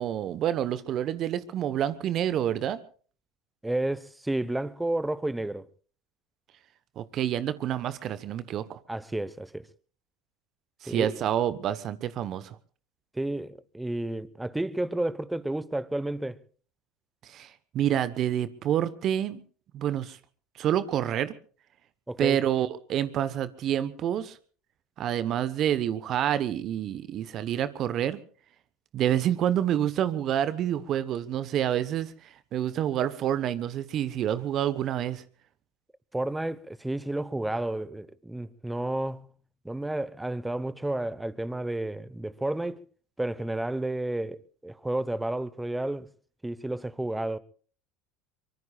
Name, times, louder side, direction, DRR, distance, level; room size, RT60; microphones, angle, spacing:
voice 1, 0.0-2.8 7.0-8.8 10.8-12.6 17.2-19.4 19.7-20.2 20.6-21.3 22.2-24.4 25.0-28.2 28.9-32.1 32.5-35.2, right 10 dB, 50° right, 1.1 m, -28 dB
voice 2, 3.6-5.7 8.9-9.7 10.9-11.2 13.1-16.4 22.1-22.4 36.1-39.3 39.6-42.8 43.2-46.1 46.4-47.4, right 1 dB, 10° right, 1.1 m, -31 dB
24.0 x 24.0 x 2.4 m
hypercardioid pair, 75°, 0 cm